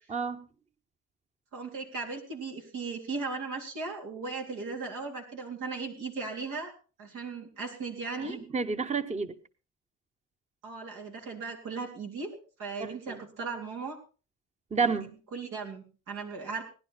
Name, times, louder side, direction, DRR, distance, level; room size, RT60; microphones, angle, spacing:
voice 1, 0.1-0.4 8.2-9.3 12.8-13.2 14.7-15.2, right 5 dB, 20° right, 0.9 m, -30 dB
voice 2, 1.5-6.7 7.0-8.4 10.6-12.3 12.6-14.0 14.8-15.0 15.3-16.6, right 4 dB, 85° right, 3.7 m, -37 dB
18.5 x 11.0 x 4.3 m
cardioid pair, 80°, 30 cm